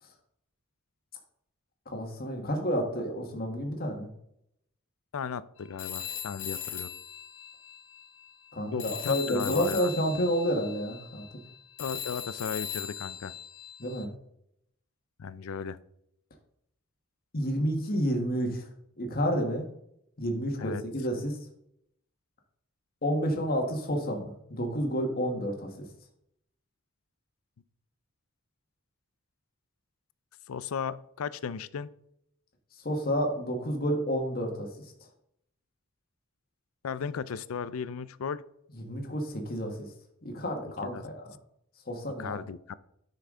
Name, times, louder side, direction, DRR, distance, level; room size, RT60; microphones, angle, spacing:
voice 1, 1.9-4.1 8.5-11.2 13.8-14.1 17.3-18.6 19.0-19.7 20.2-21.4 23.0-25.8 32.8-34.7 38.8-39.9 40.2-41.2 41.9-42.4, equal, 45° left, 3 dB, 1.4 m, -30 dB
voice 2, 5.1-6.9 8.7-9.9 11.8-13.3 15.2-15.8 20.6-20.8 30.5-31.9 36.8-38.4 40.8-41.0 42.2-42.7, left 6 dB, 80° left, 17 dB, 0.4 m, -35 dB
Telephone, 5.8-8.5 8.8-14.0, left 9 dB, 65° left, 0.9 m, -39 dB
9.9 x 5.7 x 3.7 m, 0.75 s
head